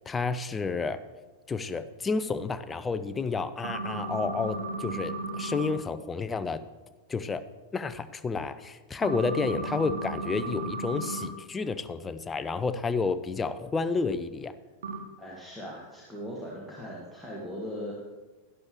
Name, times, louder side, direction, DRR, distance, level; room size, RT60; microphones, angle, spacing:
voice 1, 0.1-1.0 1.5-6.6 7.1-7.4 7.7-14.5, left 4 dB, 15° left, 12 dB, 0.5 m, -30 dB
sound 1, 3.6-5.7 9.0-11.3 14.8-15.0, right 2 dB, 65° right, 1.1 m, -34 dB
voice 2, 15.2-18.0, equal, 5° right, -5 dB, 1.7 m, -39 dB
11.5 x 11.0 x 3.0 m, 1.2 s
figure-of-eight pair, 90°, 0 cm